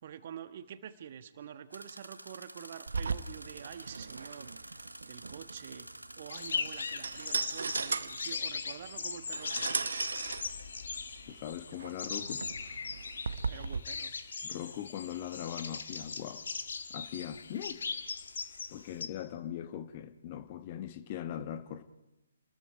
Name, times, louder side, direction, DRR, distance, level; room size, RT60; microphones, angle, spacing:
voice 1, 0.0-5.9 6.2-9.8 13.4-14.1, right 9 dB, 45° right, 1.3 m, -47 dB
sound 1, 1.7-8.4, right 1 dB, 90° right, 1.0 m, -49 dB
sound 2, 2.9-13.8, right 5 dB, 65° right, 0.9 m, -38 dB
sound 3, 6.3-19.1, left 5 dB, 60° left, 1.6 m, -39 dB
voice 2, 11.3-12.4 14.4-16.4 16.9-17.8 18.7-21.8, left 10 dB, 35° left, 1.1 m, -40 dB
29.5 x 20.5 x 4.8 m
figure-of-eight pair, 135°, 0 cm